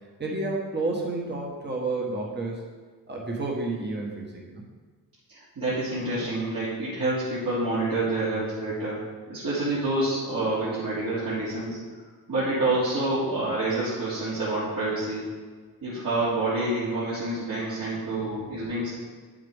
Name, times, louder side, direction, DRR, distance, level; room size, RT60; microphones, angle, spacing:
voice 1, 0.2-2.6 3.1-4.6 18.3-18.4, right 2 dB, 30° right, -1 dB, 1.3 m, -30 dB
voice 2, 5.3-9.0 9.3-11.8 12.3-15.3 15.8-18.9, right 2 dB, 60° right, -11 dB, 2.6 m, -27 dB
9.1 x 7.5 x 3.5 m, 1.5 s
wide cardioid pair, 165°, 37 cm